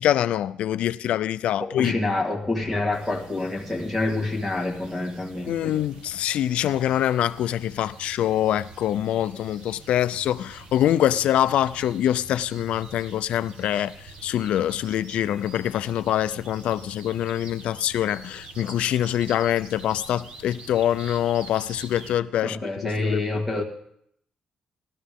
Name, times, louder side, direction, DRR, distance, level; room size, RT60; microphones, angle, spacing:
voice 1, 0.0-1.9 5.5-23.2, left 11 dB, 70° left, 0.5 m, -24 dB
voice 2, 1.6-5.8 22.4-23.6, left 2 dB, 5° right, 1.7 m, -27 dB
sound 1, 2.9-22.2, right 4 dB, 55° right, 1.3 m, -46 dB
18.5 x 12.5 x 3.6 m
cardioid pair, 180°, 2 cm